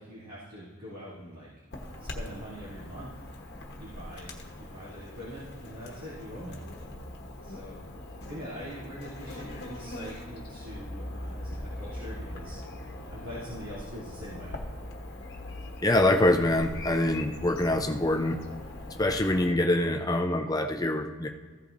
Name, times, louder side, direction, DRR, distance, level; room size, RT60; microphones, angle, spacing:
voice 1, 0.0-1.5 2.0-3.2 3.8-6.6 7.4-7.8 8.3-12.6 13.1-14.6, equal, 85° right, -10 dB, 2.8 m, -43 dB
Chirp tweet / Buzz, 1.7-19.5, left 1 dB, 50° left, 1.1 m, -41 dB
voice 2, 15.8-18.4 19.0-21.3, left 1 dB, 15° left, 4 dB, 0.5 m, -25 dB
15.0 x 8.2 x 2.6 m, 1.5 s
head